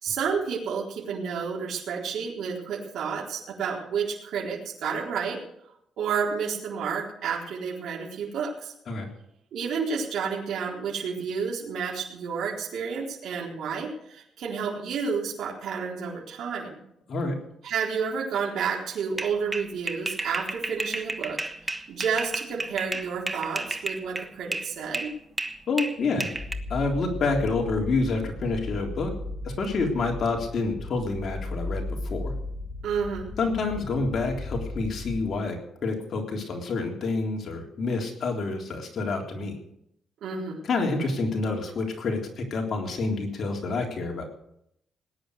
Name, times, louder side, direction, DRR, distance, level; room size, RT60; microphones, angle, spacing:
voice 1, 0.0-5.4 6.0-8.7 9.5-16.8 17.6-21.4 21.7-25.1 32.8-33.3 40.2-40.6, right 6 dB, 75° right, -3 dB, 4.0 m, -30 dB
sound 1, 19.2-24.7 24.9-26.5, right 2 dB, 15° right, 1.2 m, -32 dB
voice 2, 25.7-26.3 26.7-29.1 29.4-32.3 33.4-39.5 40.7-44.2, left 3 dB, 50° left, 1 dB, 3.6 m, -28 dB
sound 2, 26.3-35.3, left 2 dB, 30° left, 6.8 m, -36 dB
19.0 x 10.5 x 6.6 m, 0.75 s
cardioid pair, 120°, 0 cm